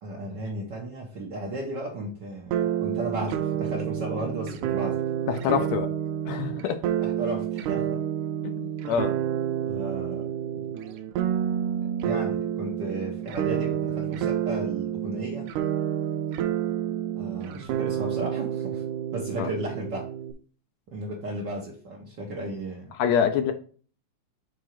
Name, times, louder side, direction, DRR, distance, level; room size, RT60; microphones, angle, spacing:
voice 1, 0.0-5.0 7.0-8.0 9.7-10.7 12.0-15.5 17.1-18.8 19.1-20.1 20.9-22.9, right 1 dB, 70° right, 1.0 m, -35 dB
sound 1, 2.5-20.3, right 10 dB, 90° right, 2.0 m, -29 dB
voice 2, 5.3-5.9 6.3-6.8 8.4-9.2 19.4-19.5 23.0-23.5, left 8 dB, 75° left, 1.7 m, -26 dB
6.3 x 3.7 x 4.4 m
omnidirectional pair, 3.4 m